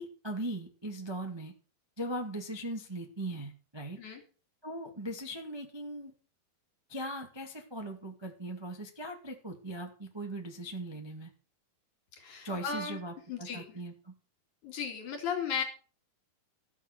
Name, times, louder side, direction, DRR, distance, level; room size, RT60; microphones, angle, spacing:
voice 1, 0.0-1.5 2.0-4.0 4.6-6.1 6.9-11.3 12.4-14.1, right 1 dB, 15° right, 3 dB, 1.1 m, -39 dB
voice 2, 12.2-13.0 13.3-13.6 14.6-15.6, left 6 dB, 55° left, 4 dB, 4.0 m, -35 dB
15.0 x 7.1 x 6.7 m, 0.37 s
omnidirectional pair, 4.4 m